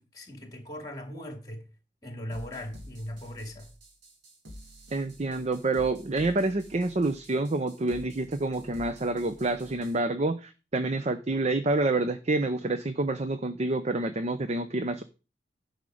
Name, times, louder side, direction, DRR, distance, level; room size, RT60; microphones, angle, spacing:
voice 1, 0.0-1.7 2.0-3.7, left 1 dB, 20° left, 2.4 m, -39 dB
sound 1, 2.3-10.0, equal, 70° right, 2.4 m, -49 dB
voice 2, 4.9-15.0, right 2 dB, 35° right, 0.6 m, -28 dB
10.5 x 6.3 x 5.0 m
head